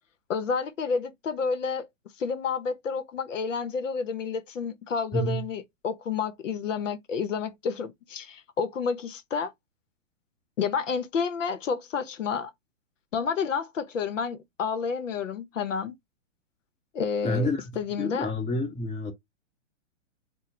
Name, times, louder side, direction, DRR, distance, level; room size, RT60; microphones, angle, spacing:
voice 1, 0.3-1.9 2.2-9.5 10.6-12.5 13.1-15.9 16.9-17.5 17.8-18.3, left 5 dB, 80° left, 0.9 m, -30 dB
voice 2, 5.1-5.4 17.2-17.7 18.0-19.1, left 1 dB, 20° left, 1.6 m, -28 dB
4.3 x 2.3 x 3.7 m
hypercardioid pair, 140°, 37 cm